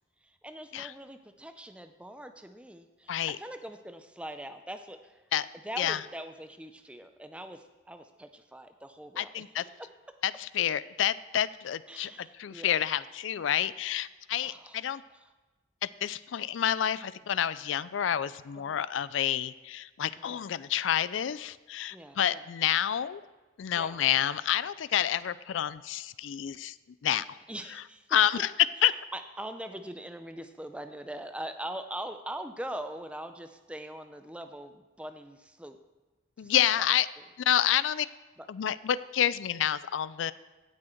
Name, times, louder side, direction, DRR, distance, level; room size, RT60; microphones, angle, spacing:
voice 1, 0.2-5.2 5.6-9.9 11.9-12.7 14.4-15.3 18.5-18.8 20.2-20.4 21.9-22.5 23.7-24.0 26.5-26.6 27.5-28.1 28.8-35.8 36.4-36.9 38.4-38.5 39.6-39.7, right 1 dB, 5° right, 8 dB, 0.5 m, -42 dB
voice 2, 9.2-9.6 10.2-15.0 15.8-23.2 23.6-26.7 27.0-27.3 28.1-28.5 28.8-28.9 36.4-37.1 37.5-38.1 38.5-40.3, left 10 dB, 80° left, 17 dB, 0.4 m, -29 dB
16.5 x 6.3 x 4.5 m, 1.2 s
head